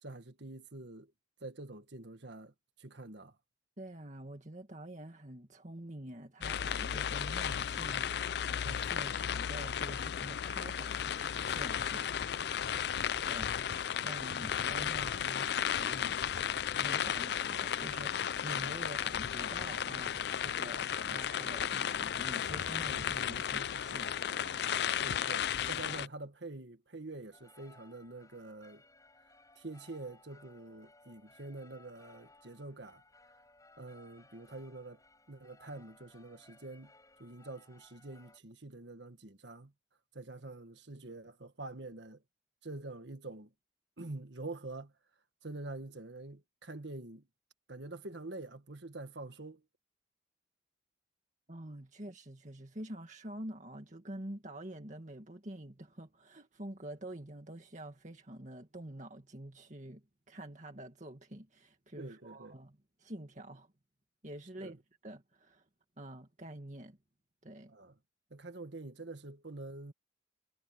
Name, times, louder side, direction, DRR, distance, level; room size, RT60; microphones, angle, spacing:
voice 1, 0.0-1.1 1.4-2.5 2.8-3.4 25.0-28.8 29.5-33.0 33.8-35.0 35.3-36.9 37.2-39.7 40.1-42.2 42.6-43.5 44.0-44.9 45.4-47.3 47.7-49.6 62.0-62.6 64.6-64.8 67.7-67.9 68.3-69.9, right 2 dB, 65° right, 1.7 m, -46 dB
voice 2, 3.8-12.9 13.3-24.5 51.5-63.7 64.2-64.8 65.0-65.7 66.0-67.0 67.4-67.7, right 1 dB, 40° right, 2.1 m, -47 dB
sound 1, 6.4-26.1, left 8 dB, 55° left, 0.4 m, -34 dB
sound 2, 27.3-38.4, left 2 dB, 15° left, 7.7 m, -62 dB
head